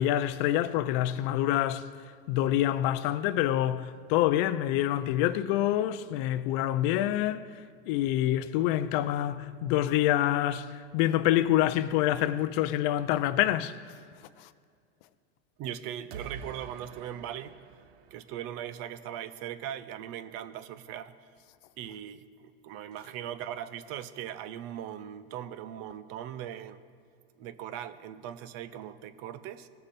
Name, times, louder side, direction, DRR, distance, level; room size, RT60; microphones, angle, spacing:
voice 1, 0.0-1.9 2.3-7.5 7.9-13.7, left 13 dB, 55° left, 0.6 m, -26 dB
voice 2, 15.6-17.6 18.1-21.1 21.8-26.8 27.4-29.7, right 10 dB, 50° right, 0.8 m, -39 dB
sound 1, 16.1-19.0, right 6 dB, 80° right, 1.0 m, -47 dB
18.5 x 6.7 x 4.3 m
supercardioid pair, 120°, 31 cm